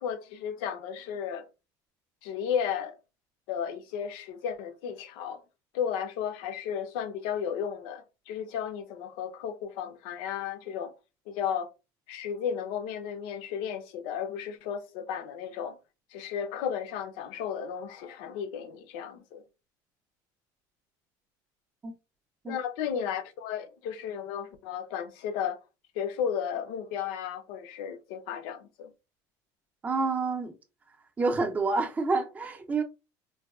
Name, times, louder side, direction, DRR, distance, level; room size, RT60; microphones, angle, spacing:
voice 1, 0.0-1.4 2.2-3.0 3.5-5.4 5.7-10.9 11.3-11.7 12.1-15.8 16.1-19.4 22.5-25.6 25.9-28.9, left 8 dB, 80° left, 0.6 m, -34 dB
voice 2, 29.8-30.6 31.2-32.8, right 3 dB, 20° right, 0.5 m, -28 dB
3.9 x 2.2 x 2.3 m
cardioid pair, 140°, 8 cm